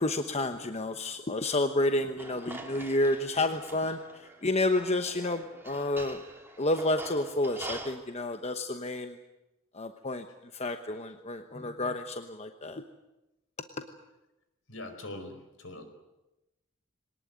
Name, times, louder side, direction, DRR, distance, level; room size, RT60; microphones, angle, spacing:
voice 1, 0.0-4.0 4.4-6.2 6.6-9.1 9.8-10.2 10.6-12.8, left 2 dB, 30° left, 7 dB, 1.1 m, -30 dB
sound 1, 2.2-7.9, right 2 dB, 10° right, 2.7 m, -45 dB
voice 2, 14.7-15.8, left 2 dB, 65° left, 8 dB, 4.8 m, -42 dB
23.5 x 19.0 x 9.4 m, 0.98 s
head